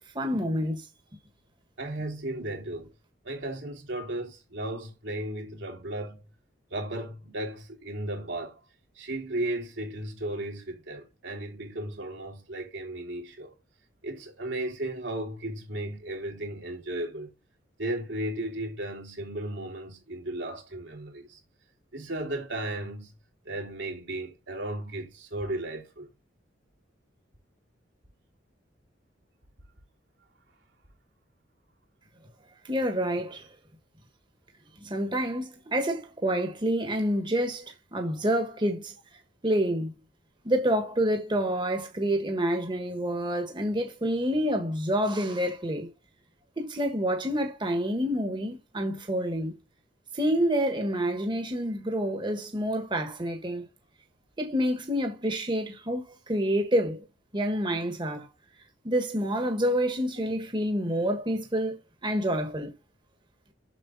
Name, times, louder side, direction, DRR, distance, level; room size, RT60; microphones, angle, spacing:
voice 1, 0.1-0.9 32.6-33.5 34.8-38.9 39.4-39.9 40.4-45.9 46.6-49.5 50.1-53.6 54.4-57.0 57.3-58.3 58.8-62.7, equal, 25° right, 1.4 m, -28 dB
voice 2, 1.8-2.9 3.2-6.2 6.7-8.5 8.9-13.5 14.0-17.3 17.8-21.4 21.9-23.1 23.4-26.1, right 1 dB, 80° right, 3.5 m, -35 dB
7.7 x 6.6 x 4.0 m
head